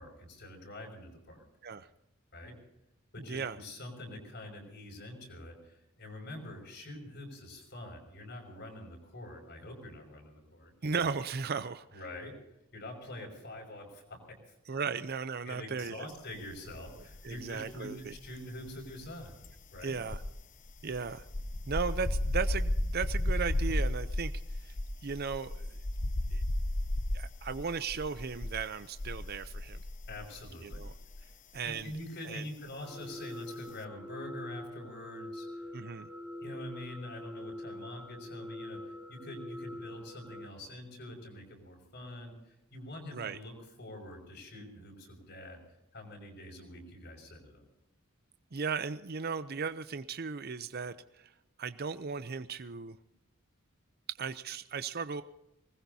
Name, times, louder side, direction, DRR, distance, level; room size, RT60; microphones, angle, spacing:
voice 1, 0.0-1.4 2.3-2.5 3.1-10.7 11.9-12.4 12.7-14.6 15.5-19.3 19.7-20.0 30.1-30.8 31.2-31.3 31.6-35.6 36.4-45.6 45.9-47.6, left 1 dB, 55° left, 2 dB, 6.0 m, -45 dB
voice 2, 10.8-11.8 14.7-16.1 17.2-18.1 19.8-20.2 20.8-21.3 21.7-24.3 24.6-24.7 25.0-25.7 26.3-26.4 27.1-29.8 30.6-30.9 31.5-31.9 32.2-32.4 35.7-36.1 43.1-43.4 48.5-51.3 51.6-53.0 54.2-55.2, right 5 dB, 45° right, 12 dB, 0.6 m, -36 dB
sound 1, 16.7-17.5 17.7-31.3 31.5-31.8, left 1 dB, 40° left, 0.8 m, -34 dB
sound 2, 32.8-40.5, left 1 dB, 5° right, 1.2 m, -44 dB
24.5 x 20.0 x 2.8 m, 0.87 s
head